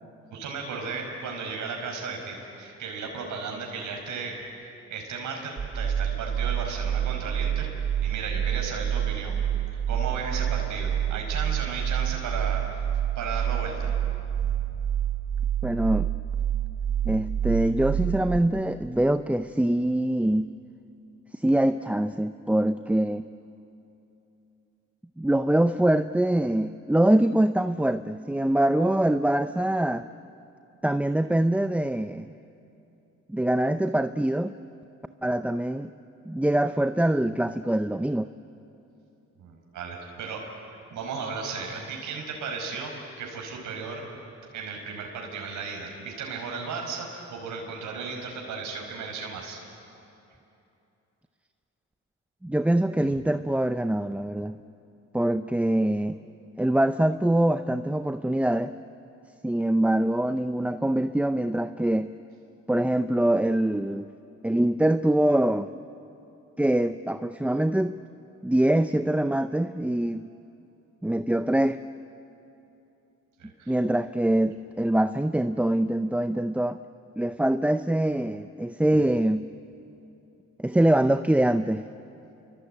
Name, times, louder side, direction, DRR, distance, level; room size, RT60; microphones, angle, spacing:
voice 1, 0.3-4.4 4.9-7.7 8.0-12.8 13.2-13.9 14.5-14.6 39.4-40.4 40.9-42.9 43.2-44.0 44.5-49.6 73.4-73.8, right 4 dB, 80° right, 1 dB, 5.6 m, -35 dB
sound 1, 5.6-18.4, right 10 dB, 45° right, 3.3 m, -28 dB
voice 2, 15.6-16.1 17.1-20.5 21.3-23.2 25.2-30.0 30.8-32.3 33.3-34.6 35.2-35.9 36.3-38.3 52.4-54.6 55.1-56.2 56.6-58.7 59.4-62.1 62.7-64.1 64.4-65.7 66.6-67.9 68.4-70.3 71.0-71.8 73.7-76.8 77.2-79.5 80.6-81.9, right 1 dB, 5° right, 10 dB, 0.6 m, -24 dB
28.0 x 23.5 x 9.1 m, 2.8 s
cardioid pair, 90°, 30 cm